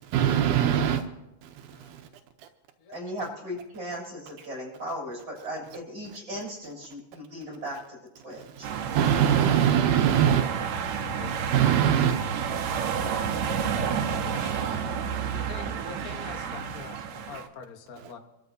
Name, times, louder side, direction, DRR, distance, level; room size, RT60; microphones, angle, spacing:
voice 1, 0.1-1.0 1.4-2.0 8.8-10.5 11.0-11.2 11.5-12.2 14.2-14.3, right 9 dB, 85° right, 5 dB, 2.3 m, -23 dB
voice 2, 1.7-2.1 2.8-3.0 11.1-11.4 12.9-13.6 14.3-14.7 15.3-18.2, left 5 dB, 70° left, 5 dB, 0.8 m, -45 dB
voice 3, 2.9-8.0 8.2-8.7, equal, 35° right, -4 dB, 8.1 m, -37 dB
sound 1, 8.6-17.5, right 7 dB, 70° right, 2.3 m, -30 dB
26.5 x 13.5 x 2.7 m, 0.94 s
omnidirectional pair, 3.5 m